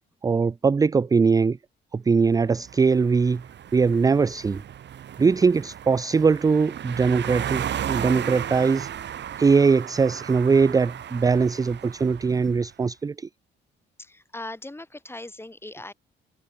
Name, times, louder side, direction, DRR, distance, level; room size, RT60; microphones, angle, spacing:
voice 1, 0.2-1.6 1.9-3.4 3.7-4.6 5.2-8.9 9.4-13.3, right 5 dB, 20° right, 0.4 m, -21 dB
sound 1, 2.4-12.7, right 10 dB, 60° right, 2.5 m, -35 dB
voice 2, 5.2-5.5 14.0-15.9, left 2 dB, 10° left, 5.5 m, -40 dB
cardioid pair, 90°, 20 cm